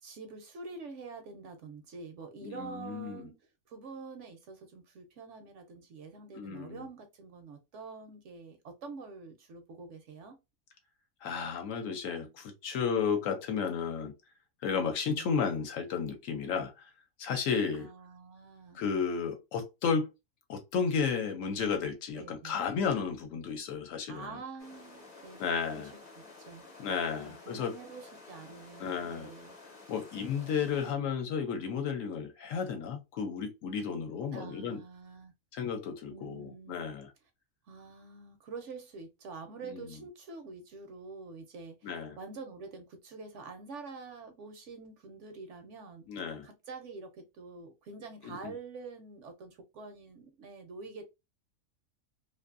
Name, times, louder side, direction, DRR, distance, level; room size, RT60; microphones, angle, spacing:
voice 1, 0.0-3.4 3.7-10.4 15.1-15.3 17.7-18.8 22.1-22.6 24.1-26.0 26.4-26.6 27.2-29.6 30.5-31.1 34.3-35.3 36.1-36.9 37.7-46.0 46.4-51.0, right 4 dB, 65° right, 0.8 m, -46 dB
voice 2, 2.4-3.3 6.3-6.8 11.2-14.1 14.6-16.9 17.2-17.9 18.7-20.1 20.5-24.4 25.4-25.9 26.8-27.7 28.8-29.3 29.9-34.8 35.5-37.1 39.6-39.8 41.8-42.2 46.1-46.5 48.2-48.5, left 6 dB, 70° left, 0.9 m, -33 dB
sound 1, 24.6-30.9, left 3 dB, 35° left, 0.7 m, -52 dB
2.5 x 2.5 x 2.4 m
omnidirectional pair, 1.5 m